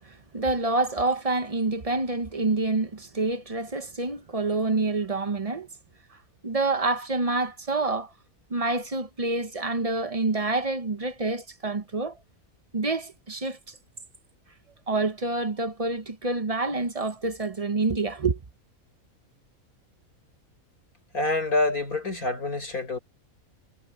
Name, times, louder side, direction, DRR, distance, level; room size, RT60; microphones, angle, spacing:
voice 1, 0.0-5.7 6.4-8.1 8.5-12.2 12.7-13.8 14.9-18.4, right 3 dB, 30° right, 0.8 m, -27 dB
voice 2, 21.1-23.0, left 2 dB, 80° left, 7.0 m, -26 dB
omnidirectional pair, 1.5 m